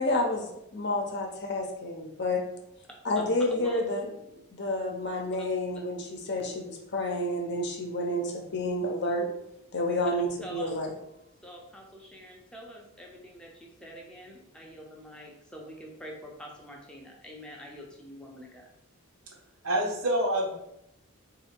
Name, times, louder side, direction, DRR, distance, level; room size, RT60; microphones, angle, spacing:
voice 1, 0.0-2.4 3.0-9.3 9.7-10.9, left 1 dB, 50° left, 2 dB, 0.8 m, -30 dB
voice 2, 3.5-3.8 10.4-10.7 11.4-18.7, equal, 5° left, -1 dB, 0.7 m, -45 dB
voice 3, 19.6-20.5, right 1 dB, 80° right, 0 dB, 1.1 m, -27 dB
4.0 x 2.7 x 4.4 m, 0.81 s
head